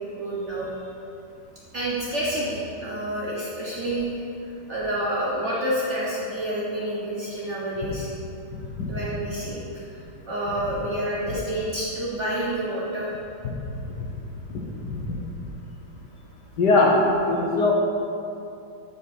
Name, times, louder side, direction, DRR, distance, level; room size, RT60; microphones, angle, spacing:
voice 1, 0.2-0.7 1.7-8.1 8.9-9.9 10.2-13.2, right 1 dB, 45° right, -7 dB, 1.1 m, -28 dB
voice 2, 8.5-8.9 13.4-13.5 14.0-14.1 14.8-15.0 16.6-17.0 17.3-17.7, left 3 dB, 60° left, -2 dB, 1.4 m, -21 dB
8.9 x 5.2 x 4.5 m, 2.7 s
omnidirectional pair, 2.3 m